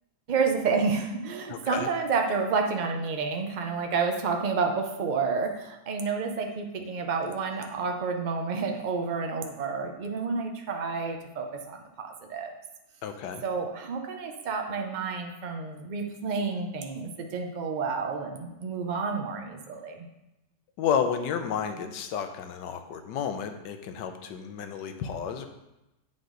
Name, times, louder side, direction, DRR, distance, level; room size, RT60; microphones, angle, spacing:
voice 1, 0.3-12.5 13.4-20.1, right 5 dB, 85° right, 3 dB, 0.4 m, -30 dB
voice 2, 1.5-1.9 13.0-13.4 20.8-25.5, left 7 dB, 80° left, 7 dB, 1.3 m, -31 dB
8.0 x 5.6 x 3.8 m, 0.94 s
omnidirectional pair, 1.9 m